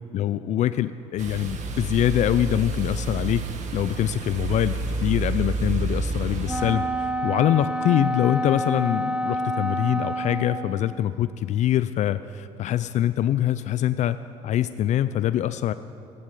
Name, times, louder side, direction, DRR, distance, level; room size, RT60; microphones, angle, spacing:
voice 1, 0.1-3.4 3.7-14.2 14.4-15.7, left 12 dB, 60° left, 13 dB, 0.4 m, -24 dB
sound 1, 1.2-6.7, right 3 dB, 60° right, 1.7 m, -29 dB
Wind instrument woodwind instrument, 6.5-10.8, right 1 dB, 10° right, 0.8 m, -28 dB
14.0 x 12.0 x 8.2 m, 2.7 s
cardioid pair, 95°, 14 cm